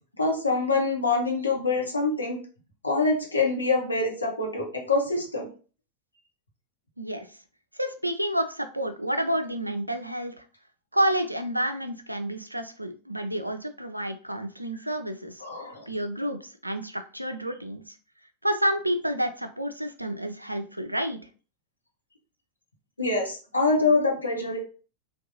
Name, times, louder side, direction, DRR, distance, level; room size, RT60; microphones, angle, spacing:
voice 1, 0.2-2.4 2.8-5.5 15.4-15.9 23.0-24.6, left 3 dB, 80° left, 0 dB, 0.9 m, -25 dB
voice 2, 7.8-10.3 10.9-15.4 15.9-17.9 18.4-21.2, right 1 dB, 85° right, 8 dB, 0.4 m, -29 dB
3.5 x 2.3 x 2.7 m, 0.37 s
figure-of-eight pair, 90°, 0 cm